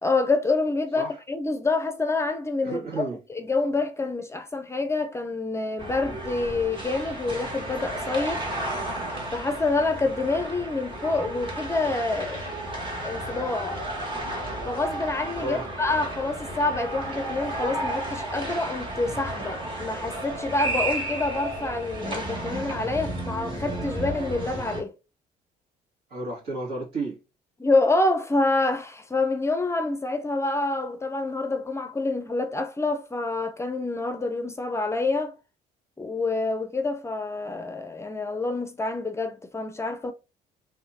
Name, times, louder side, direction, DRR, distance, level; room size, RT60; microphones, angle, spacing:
voice 1, 0.0-8.4 9.3-12.4 13.0-13.8 14.6-24.9 27.6-35.4 36.0-40.1, left 3 dB, 15° left, 0.6 m, -27 dB
voice 2, 2.6-3.2 15.4-15.6 26.1-27.2, right 2 dB, 70° right, 2.3 m, -32 dB
sound 1, 5.8-24.8, right 1 dB, 30° right, 1.8 m, -33 dB
3.7 x 3.4 x 2.8 m
cardioid pair, 110°, 17 cm